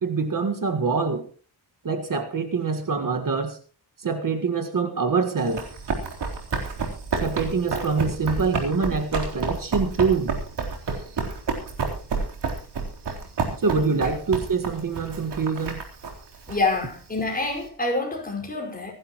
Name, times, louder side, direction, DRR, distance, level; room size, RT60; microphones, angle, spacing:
voice 1, 0.0-1.2 1.8-3.6 4.0-5.6 7.2-10.4 13.6-15.8, right 4 dB, 50° right, 6 dB, 1.7 m, -25 dB
Run, 5.4-17.6, right 4 dB, 75° right, 3.8 m, -30 dB
voice 2, 16.5-18.9, left 2 dB, 20° left, 1 dB, 5.3 m, -27 dB
26.5 x 11.5 x 3.0 m, 0.37 s
wide cardioid pair, 135°, 41 cm